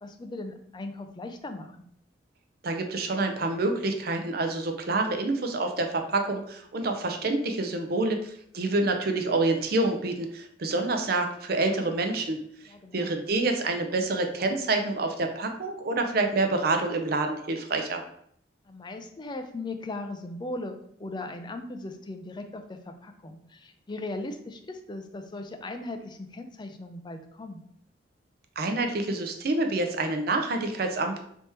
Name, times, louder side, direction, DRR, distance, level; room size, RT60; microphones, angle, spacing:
voice 1, 0.0-1.8 12.7-13.2 18.7-27.6, left 2 dB, 25° left, 6 dB, 0.4 m, -38 dB
voice 2, 2.6-12.4 12.9-18.0 28.6-31.2, right 2 dB, 60° right, 5 dB, 0.6 m, -27 dB
3.5 x 3.0 x 4.3 m, 0.68 s
head